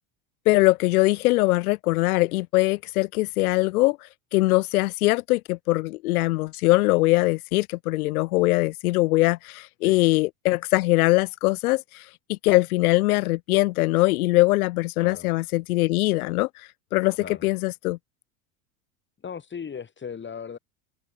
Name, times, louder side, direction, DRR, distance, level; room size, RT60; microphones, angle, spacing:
voice 1, 0.4-17.2 17.4-18.0, left 20 dB, 80° left, 1.4 m, -22 dB
voice 2, 19.2-20.6, left 7 dB, 25° left, 3.7 m, -37 dB
supercardioid pair, 100°, 43 cm